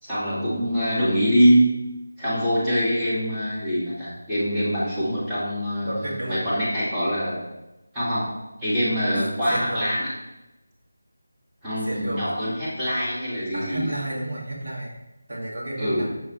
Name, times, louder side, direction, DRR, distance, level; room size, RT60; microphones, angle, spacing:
voice 1, 0.0-1.7 2.2-7.4 7.9-8.3 8.6-10.1 11.6-13.9 15.8-16.1, equal, 10° right, -13 dB, 1.7 m, -24 dB
voice 2, 5.8-6.4 9.5-9.9 11.8-12.3 13.5-14.9 15.3-16.1, right 1 dB, 50° right, -5 dB, 1.8 m, -31 dB
6.2 x 5.2 x 3.0 m, 0.99 s
figure-of-eight pair, 160°, 0 cm